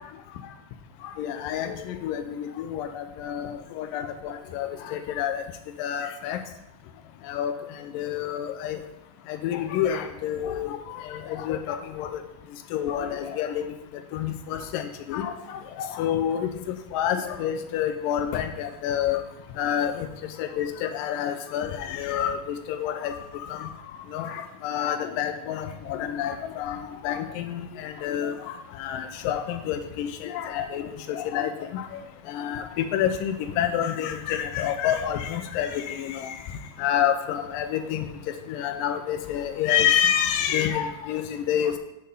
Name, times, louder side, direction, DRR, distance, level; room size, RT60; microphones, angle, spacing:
voice 1, 1.2-5.4 5.8-6.4 7.3-7.5 7.9-8.8 9.3-10.8 11.0-12.1 12.7-13.7 14.1-15.3 15.8-19.2 19.6-20.1 20.4-23.2 23.5-23.7 24.1-26.8 27.0-28.3 28.8-31.8 32.3-36.4 36.8-38.1 38.5-41.8, left 9 dB, 85° left, 8 dB, 2.2 m, -28 dB
6.7 x 5.0 x 5.4 m, 0.86 s
omnidirectional pair, 4.0 m